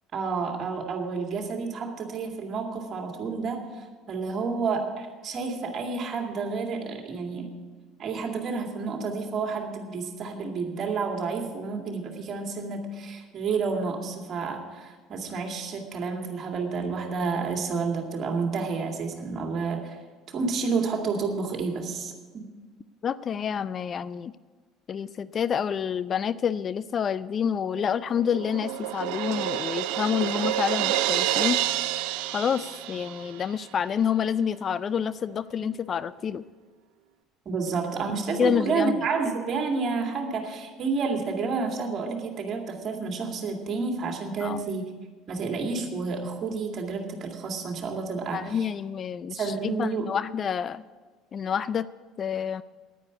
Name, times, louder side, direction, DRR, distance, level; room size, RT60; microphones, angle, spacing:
voice 1, 0.1-7.5 8.0-20.0 20.3-22.5 37.5-44.9 45.3-48.7 49.3-50.1, right 4 dB, 40° right, 2 dB, 2.2 m, -30 dB
voice 2, 23.0-24.3 24.9-31.6 32.3-36.4 38.4-39.0 44.4-44.6 48.3-50.8 51.3-51.9 52.2-52.6, left 7 dB, 40° left, 16 dB, 0.3 m, -28 dB
Crash cymbal, 27.8-33.5, right 13 dB, 65° right, 0.5 m, -28 dB
10.0 x 9.7 x 8.2 m, 1.4 s
figure-of-eight pair, 60°, 0 cm